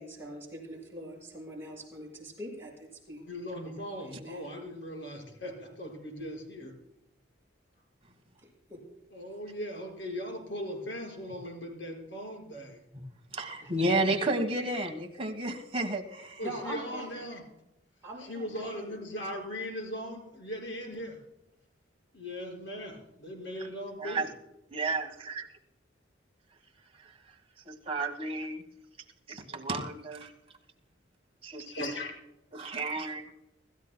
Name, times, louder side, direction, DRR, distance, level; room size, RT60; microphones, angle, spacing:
voice 1, 0.0-3.2 4.1-4.5 8.4-9.0 13.6-14.0 16.4-17.1 18.0-19.0, right 1 dB, 15° right, -4 dB, 6.1 m, -43 dB
voice 2, 3.2-6.7 9.1-12.8 16.4-17.4 18.2-21.2 22.1-24.3 31.7-32.1, left 1 dB, 75° left, 1 dB, 5.5 m, -39 dB
voice 3, 13.3-16.4 23.6-23.7 24.0-24.3 24.7-25.5 27.0-27.1 27.6-28.6 29.3-30.3 31.4-31.7 32.5-33.4, right 2 dB, 30° right, 4 dB, 1.4 m, -32 dB
25.5 x 14.0 x 2.2 m, 0.88 s
head